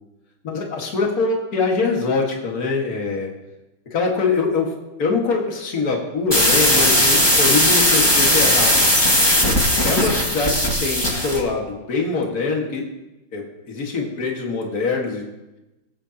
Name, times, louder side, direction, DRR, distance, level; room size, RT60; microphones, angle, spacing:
voice 1, 0.4-3.3 3.9-4.7 5.0-8.9 9.8-12.8 13.3-15.2, left 4 dB, 45° left, 0 dB, 2.2 m, -23 dB
sound 1, 6.3-11.4, equal, 10° left, 1.8 m, -17 dB
21.0 x 8.7 x 2.9 m, 1.0 s
omnidirectional pair, 2.3 m